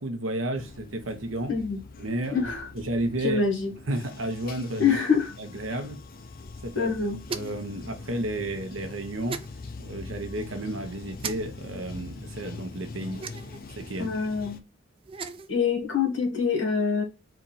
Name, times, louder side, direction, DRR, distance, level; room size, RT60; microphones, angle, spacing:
voice 1, 0.0-1.5 2.0-3.4 3.9-5.0 5.4-6.0 6.6-6.9 7.3-9.4 9.8-13.2 13.8-14.1, right 1 dB, 80° right, 1.0 m, -32 dB
Bathtub (filling or washing), 0.5-14.6, left 3 dB, 45° left, 0.6 m, -43 dB
voice 2, 1.5-1.8 2.3-2.7 3.2-3.7 4.8-5.3 6.8-7.2 14.0-14.6 15.5-17.0, left 5 dB, 65° left, 1.7 m, -25 dB
sound 1, 7.2-7.7 9.3-9.5 11.2-11.3 13.2-13.6 15.0-15.5, right 5 dB, 25° right, 0.4 m, -35 dB
4.4 x 2.5 x 4.1 m
head